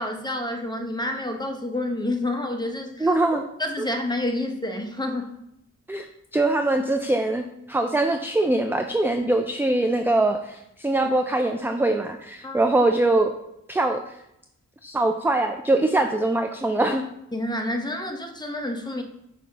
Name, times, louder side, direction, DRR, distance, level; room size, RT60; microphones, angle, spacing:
voice 1, 0.0-3.2 3.6-5.3 12.4-12.7 17.3-19.0, left 1 dB, 15° left, 3 dB, 1.0 m, -29 dB
voice 2, 3.0-3.4 3.8-3.9 5.9-6.1 6.3-13.3 13.7-14.1 14.8-17.0, right 2 dB, 5° right, 6 dB, 0.4 m, -22 dB
7.5 x 2.8 x 5.3 m, 0.79 s
cardioid pair, 55°, 30 cm